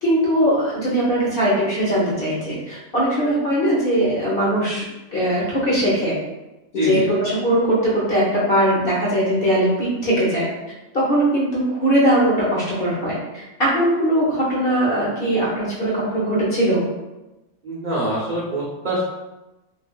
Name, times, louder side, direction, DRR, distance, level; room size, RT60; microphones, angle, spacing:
voice 1, 0.0-4.8 5.1-6.1 6.7-10.5 10.9-16.8, right 1 dB, 50° left, -6 dB, 0.8 m, -20 dB
voice 2, 6.8-7.1 17.6-19.0, right 1 dB, 65° right, -7 dB, 0.4 m, -24 dB
3.2 x 2.4 x 2.2 m, 1.0 s
omnidirectional pair, 1.6 m